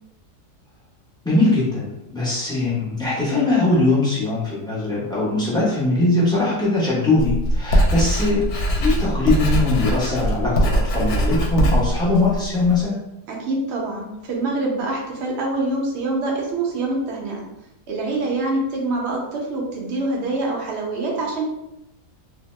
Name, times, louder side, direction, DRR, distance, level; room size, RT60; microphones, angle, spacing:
voice 1, 1.2-8.4 8.8-13.0, left 2 dB, 5° left, -9 dB, 0.4 m, -21 dB
Writing, 7.2-12.8, equal, 75° left, 1.0 m, -21 dB
voice 2, 13.3-17.5 17.9-21.4, right 2 dB, 55° right, -1 dB, 0.7 m, -25 dB
2.8 x 2.1 x 3.1 m, 0.87 s
omnidirectional pair, 1.7 m